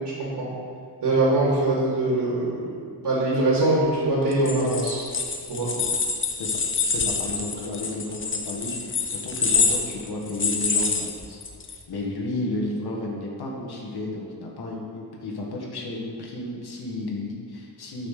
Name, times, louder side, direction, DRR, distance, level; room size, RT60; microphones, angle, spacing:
voice 1, 1.0-2.6 3.0-5.1 5.5-5.7, right 2 dB, 80° right, -6 dB, 2.9 m, -22 dB
sound 1, 4.3-11.7, left 4 dB, 30° left, 0.8 m, -26 dB
voice 2, 6.3-11.4 11.9-18.1, left 2 dB, 70° left, -2 dB, 1.8 m, -32 dB
9.1 x 6.0 x 6.6 m, 2.1 s
wide cardioid pair, 150°, 40 cm